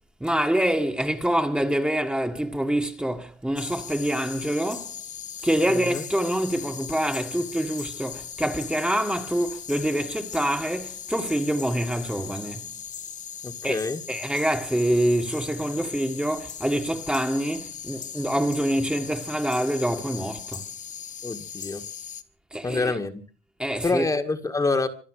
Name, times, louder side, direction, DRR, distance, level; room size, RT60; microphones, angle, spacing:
voice 1, 0.2-4.9 5.4-12.7 13.6-20.6 22.5-22.9 23.6-24.1, right 1 dB, 5° right, 1.7 m, -26 dB
sound 1, 3.6-22.2, left 8 dB, 45° left, 1.4 m, -39 dB
voice 2, 5.7-6.0 13.4-14.0 21.2-21.8 22.6-23.1 23.8-24.9, left 3 dB, 20° left, 1.8 m, -26 dB
25.5 x 8.7 x 6.5 m
cardioid pair, 110°, 17 cm